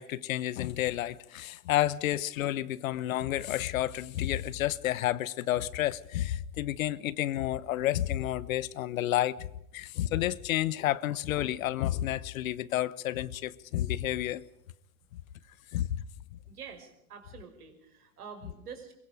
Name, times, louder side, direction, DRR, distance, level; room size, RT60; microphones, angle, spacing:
voice 1, 0.0-9.5 9.7-14.4 15.7-16.0, left 13 dB, 60° left, 1.1 m, -30 dB
voice 2, 16.5-18.9, right 6 dB, 75° right, 5.8 m, -47 dB
22.5 x 22.5 x 5.1 m
hypercardioid pair, 105°, 45 cm